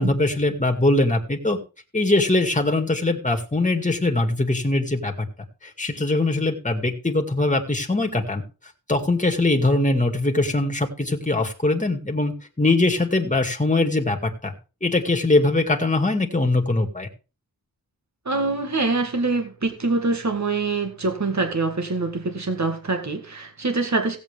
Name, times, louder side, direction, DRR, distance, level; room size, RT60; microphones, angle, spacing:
voice 1, 0.0-1.6 1.9-5.3 5.6-8.4 8.9-14.5 14.8-17.1, left 2 dB, 20° left, 4 dB, 2.1 m, -22 dB
voice 2, 18.3-24.2, right 3 dB, 45° right, 5 dB, 1.9 m, -24 dB
16.5 x 8.1 x 3.5 m, 0.33 s
wide cardioid pair, 80°, 38 cm